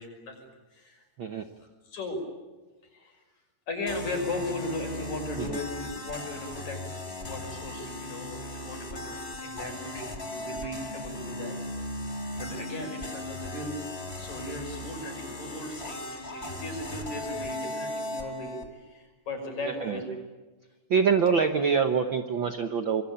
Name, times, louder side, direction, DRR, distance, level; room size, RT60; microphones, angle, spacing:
voice 1, 0.0-1.1 1.6-2.2 2.8-3.2 3.7-11.6 12.3-13.8 14.2-20.1, left 2 dB, 65° left, 4 dB, 7.2 m, -37 dB
sound 1, 3.9-18.7, left 1 dB, 20° left, 2.7 m, -37 dB
voice 2, 19.7-20.0 20.9-23.0, right 6 dB, 60° right, 7 dB, 1.4 m, -25 dB
26.5 x 23.0 x 8.6 m, 1.2 s
omnidirectional pair, 3.5 m